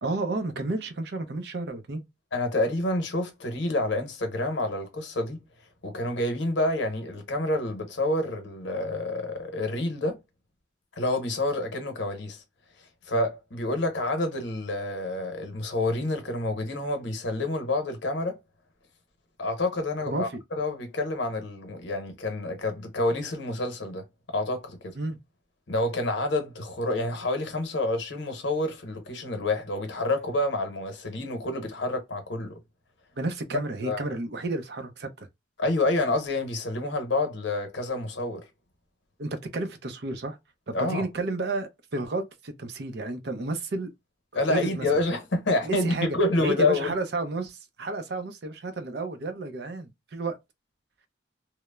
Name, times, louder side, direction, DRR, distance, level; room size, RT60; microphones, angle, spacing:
voice 1, 0.0-2.0 20.1-20.4 25.0-25.2 33.2-35.3 39.2-40.4 40.7-43.9 44.3-44.9 45.6-46.1 46.4-50.4, right 2 dB, 60° right, 0.5 m, -31 dB
voice 2, 2.3-5.4 5.8-10.2 11.0-12.4 13.0-18.4 19.4-25.0 25.7-32.6 33.8-34.0 35.6-38.4 40.7-41.0 44.3-46.9, left 2 dB, 75° left, 0.8 m, -28 dB
3.0 x 2.0 x 2.2 m
head